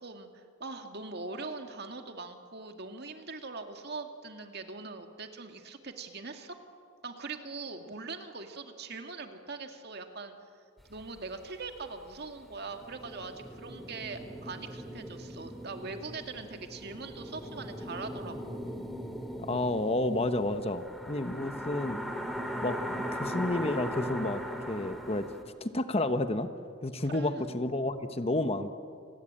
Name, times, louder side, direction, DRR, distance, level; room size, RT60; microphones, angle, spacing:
voice 1, 0.0-6.6 7.0-10.3 10.9-18.8 27.0-27.6, right 3 dB, 55° right, 5 dB, 2.2 m, -42 dB
sound 1, 10.8-10.9 11.0-11.2 11.7-11.8 12.4-25.4, equal, ahead, 2.4 m, -39 dB
voice 2, 19.4-22.0 22.6-24.4 24.7-25.3 25.6-26.5 26.8-28.7, left 2 dB, 30° left, 9 dB, 1.1 m, -30 dB
29.0 x 20.0 x 8.9 m, 2.3 s
head